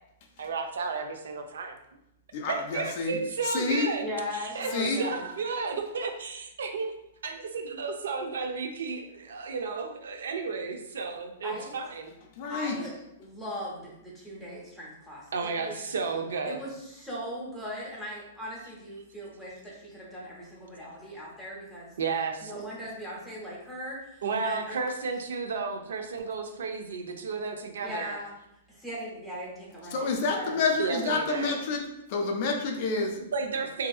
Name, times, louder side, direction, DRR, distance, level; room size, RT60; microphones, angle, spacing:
voice 1, 0.4-1.7 2.5-6.9 7.2-12.1 15.3-16.6 22.0-22.6 24.2-28.2 30.8-31.5 33.0-33.9, right 4 dB, 90° right, 5 dB, 0.4 m, -33 dB
voice 2, 2.3-3.2 3.4-3.9 4.7-5.0 12.4-12.8 29.9-31.8 32.1-33.2, left 4 dB, 40° left, 2 dB, 0.4 m, -28 dB
voice 3, 4.0-5.2 11.4-11.7 12.5-12.9 13.2-15.8 16.4-21.9 22.4-24.8 27.8-28.3 28.7-30.6, equal, ahead, -7 dB, 0.7 m, -39 dB
2.6 x 2.4 x 2.3 m, 0.83 s
hypercardioid pair, 165°, 0 cm